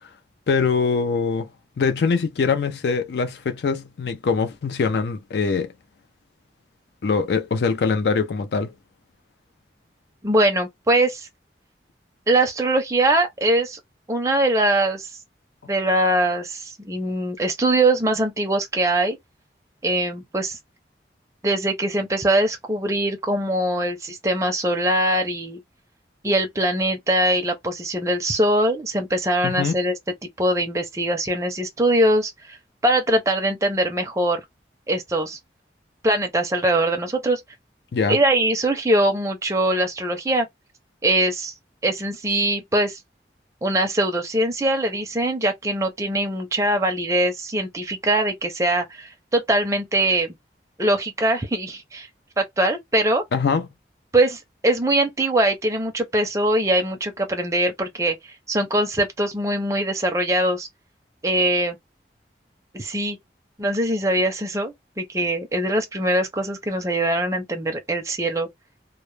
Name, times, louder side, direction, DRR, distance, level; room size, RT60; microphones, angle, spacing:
voice 1, 0.5-1.5 1.8-5.7 7.0-8.7 29.4-29.8 37.9-38.2 53.3-53.7, left 5 dB, 70° left, 0.4 m, -23 dB
voice 2, 10.2-11.3 12.3-13.8 14.1-15.1 15.7-19.2 19.8-20.6 21.4-25.6 26.2-29.9 30.4-32.6 32.8-34.4 34.9-35.4 36.0-37.4 38.1-40.5 41.0-41.5 41.8-43.0 43.6-50.3 50.8-52.1 52.4-53.2 54.1-58.2 58.5-60.7 61.2-61.8 62.7-63.2 63.6-68.5, right 1 dB, 15° right, 0.5 m, -22 dB
2.1 x 2.0 x 3.1 m
head